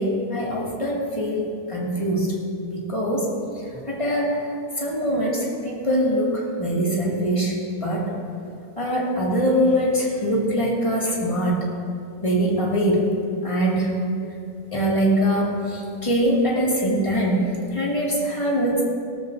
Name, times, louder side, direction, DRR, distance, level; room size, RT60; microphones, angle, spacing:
voice 1, 0.0-2.3 2.7-3.3 3.9-4.4 4.8-7.6 7.8-8.0 8.8-11.6 12.2-13.1 13.4-13.9 14.7-18.8, equal, 15° left, -5 dB, 2.2 m, -23 dB
18.0 x 13.0 x 2.6 m, 2.5 s
omnidirectional pair, 1.9 m